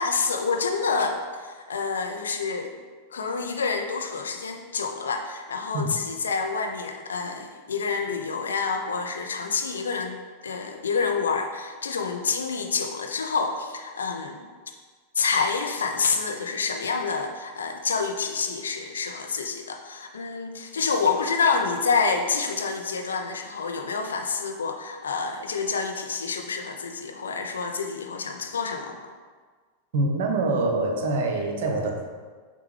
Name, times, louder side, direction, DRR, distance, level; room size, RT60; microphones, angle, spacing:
voice 1, 0.0-2.8 3.1-14.5 15.1-29.0, left 5 dB, 70° left, 4 dB, 0.4 m, -28 dB
voice 2, 29.9-32.0, right 2 dB, 55° right, 3 dB, 0.6 m, -25 dB
6.6 x 2.2 x 3.1 m, 1.5 s
figure-of-eight pair, 90°, 0 cm